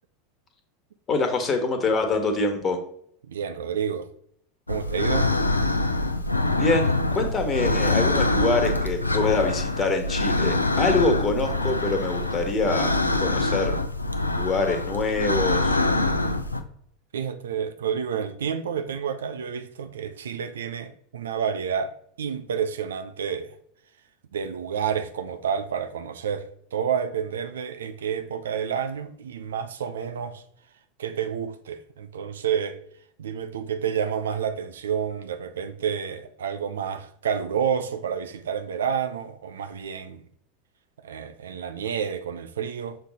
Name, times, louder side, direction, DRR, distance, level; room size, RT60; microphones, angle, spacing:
voice 1, 1.1-2.8 6.6-12.9 13.2-13.8 14.3-15.8, left 3 dB, 30° left, 1.4 m, -25 dB
voice 2, 3.3-4.1 4.7-5.3 17.1-23.5 24.3-30.4 31.0-32.8 33.2-40.2 41.0-43.0, right 7 dB, 70° right, 0.5 m, -29 dB
sound 1, 4.7-16.6, left 2 dB, 85° left, 0.5 m, -24 dB
6.5 x 3.9 x 4.1 m
figure-of-eight pair, 80°, 0 cm